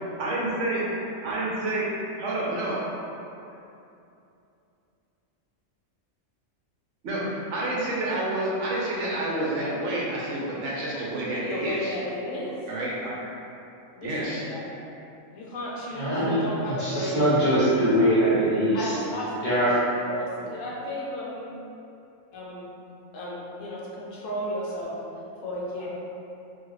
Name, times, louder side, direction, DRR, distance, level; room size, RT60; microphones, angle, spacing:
voice 1, 0.2-0.9 1.2-1.9 2.1-2.8 7.0-11.9 12.7-13.3 14.0-14.5, right 1 dB, 70° right, -6 dB, 0.9 m, -29 dB
voice 2, 11.5-12.6 14.0-14.6 15.3-17.4 18.7-19.7 20.1-21.5 22.3-22.7 23.1-24.9 25.4-25.9, left 1 dB, 80° left, -5 dB, 1.0 m, -34 dB
voice 3, 15.9-19.0 19.4-19.8, equal, 45° left, -10 dB, 0.7 m, -22 dB
2.6 x 2.3 x 3.2 m, 2.7 s
omnidirectional pair, 1.3 m